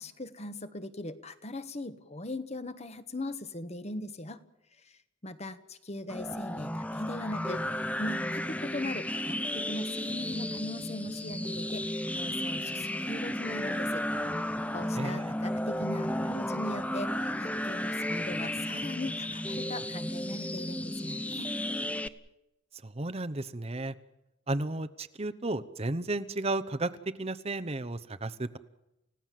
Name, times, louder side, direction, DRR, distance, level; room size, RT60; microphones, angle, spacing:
voice 1, 0.0-4.4 5.2-7.6 8.0-14.0 14.7-21.5, left 1 dB, 35° left, 11 dB, 1.3 m, -39 dB
sound 1, 6.1-22.1, left 1 dB, 5° left, 0.8 m, -33 dB
voice 2, 14.9-15.3 22.8-23.9 24.5-26.9 27.2-28.6, right 2 dB, 30° right, 11 dB, 0.9 m, -33 dB
30.0 x 16.5 x 7.6 m, 0.90 s
head